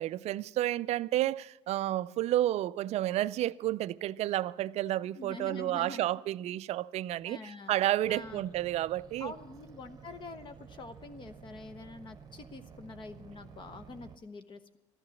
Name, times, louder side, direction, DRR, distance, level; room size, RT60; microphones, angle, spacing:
voice 1, 0.0-9.3, right 14 dB, 45° right, 0.4 m, -31 dB
voice 2, 5.1-6.1 7.2-7.7 8.1-8.4 9.2-14.8, left 3 dB, 35° left, 1.0 m, -45 dB
sound 1, 8.0-14.2, right 7 dB, 25° right, 1.1 m, -52 dB
14.0 x 11.5 x 7.1 m
hypercardioid pair, 80°, 15 cm